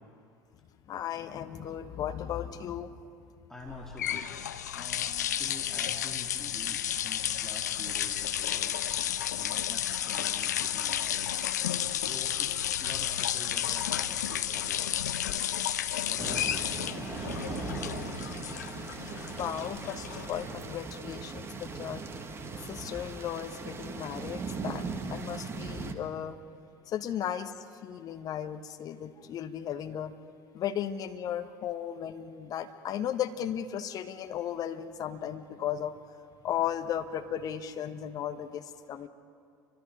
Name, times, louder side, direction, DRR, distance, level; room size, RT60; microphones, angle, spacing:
voice 1, 0.9-2.9 19.0-22.0 22.7-26.4 26.9-30.1 30.5-36.0 36.4-39.1, left 10 dB, 40° left, 8 dB, 1.4 m, -35 dB
voice 2, 3.5-4.3 4.7-8.8 9.4-11.3 11.6-15.5 16.0-18.0, left 1 dB, 5° left, -3 dB, 3.4 m, -47 dB
sound 1, 3.7-20.7, left 10 dB, 70° left, 0.7 m, -32 dB
sound 2, 16.2-25.9, right 4 dB, 25° right, 2.0 m, -39 dB
29.5 x 24.5 x 5.2 m, 2.4 s
figure-of-eight pair, 65°, 9 cm